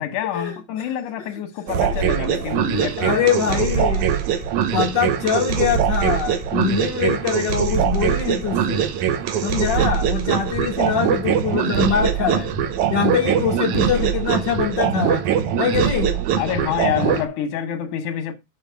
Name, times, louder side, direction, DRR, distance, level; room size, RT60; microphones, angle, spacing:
voice 1, 0.0-3.7 16.4-18.3, left 10 dB, 85° left, 2.6 m, -27 dB
sound 1, 1.7-17.2, right 8 dB, 80° right, 2.3 m, -22 dB
voice 2, 2.7-4.1 4.7-9.0 9.4-12.5 12.9-15.3 15.6-16.2, left 7 dB, 65° left, 1.1 m, -23 dB
7.2 x 5.6 x 4.6 m
omnidirectional pair, 3.4 m